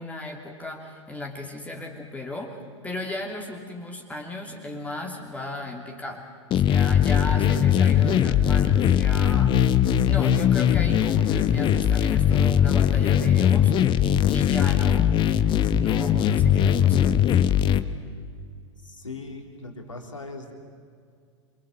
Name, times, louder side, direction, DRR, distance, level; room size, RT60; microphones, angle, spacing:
voice 1, 0.0-2.6 2.8-15.1 15.6-17.1, left 1 dB, 10° left, 1 dB, 2.9 m, -36 dB
sound 1, 6.5-17.8, left 9 dB, 30° left, 1.1 m, -20 dB
voice 2, 18.8-20.5, left 3 dB, 85° left, 2 dB, 3.6 m, -39 dB
27.5 x 23.0 x 7.7 m, 2.2 s
figure-of-eight pair, 95°, 16 cm